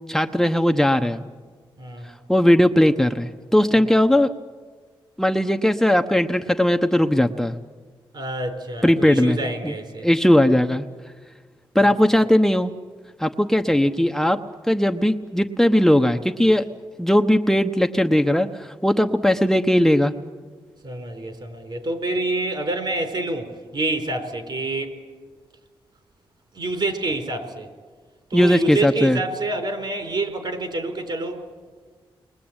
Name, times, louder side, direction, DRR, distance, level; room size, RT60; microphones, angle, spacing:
voice 1, 0.1-1.2 2.3-4.3 5.2-7.6 8.8-9.4 9.6-9.7 10.0-10.8 11.7-12.7 13.2-14.4 14.7-16.6 17.0-20.1 28.3-29.2, left 1 dB, 5° left, 5 dB, 1.0 m, -18 dB
voice 2, 8.1-10.1 20.8-25.0 26.5-27.7 28.3-31.4, right 2 dB, 55° right, 7 dB, 4.4 m, -27 dB
30.0 x 22.0 x 8.9 m, 1.5 s
cardioid pair, 80°, 9 cm